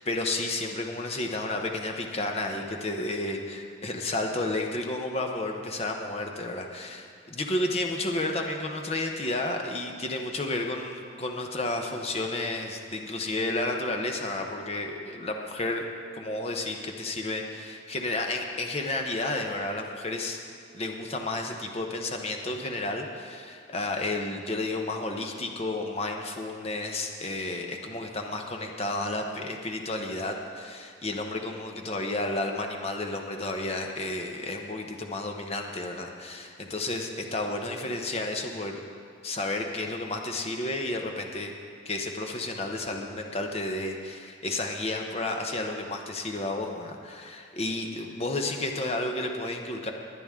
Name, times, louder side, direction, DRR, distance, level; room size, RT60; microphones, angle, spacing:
voice 1, 0.0-15.8 16.1-20.4 20.7-38.8 39.2-41.5 41.8-49.9, left 2 dB, 30° left, 3 dB, 0.9 m, -32 dB
20.5 x 8.9 x 3.7 m, 2.2 s
head